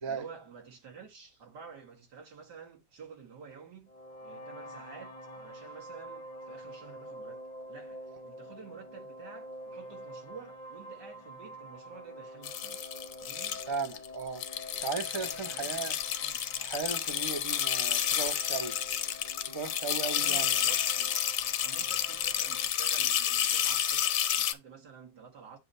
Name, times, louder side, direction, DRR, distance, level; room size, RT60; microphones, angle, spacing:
voice 1, 0.1-3.9 4.2-7.4 7.7-13.6 15.1-15.9 16.2-16.7 20.2-20.8 21.6-25.6, right 6 dB, 85° right, 2.4 m, -50 dB
sound 1, 3.9-22.7, equal, 30° left, 0.9 m, -47 dB
sound 2, 12.4-14.1 14.4-24.5, left 10 dB, 65° left, 1.0 m, -30 dB
voice 2, 13.7-14.4 14.8-16.0 16.6-18.8 19.5-20.5, right 5 dB, 25° right, 0.7 m, -36 dB
8.5 x 2.9 x 5.4 m
omnidirectional pair, 1.8 m